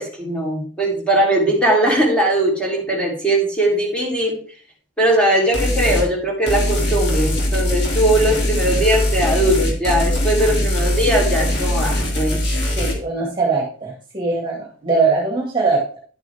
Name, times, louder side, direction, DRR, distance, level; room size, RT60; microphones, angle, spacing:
voice 1, 0.0-4.4 5.0-12.4, right 1 dB, 5° left, -4 dB, 3.9 m, -19 dB
sound 1, 5.5-6.1 6.5-12.9, left 1 dB, 60° left, 3.0 m, -21 dB
voice 2, 12.8-16.0, right 4 dB, 25° right, -1 dB, 2.4 m, -21 dB
11.5 x 8.1 x 3.7 m, 0.40 s
head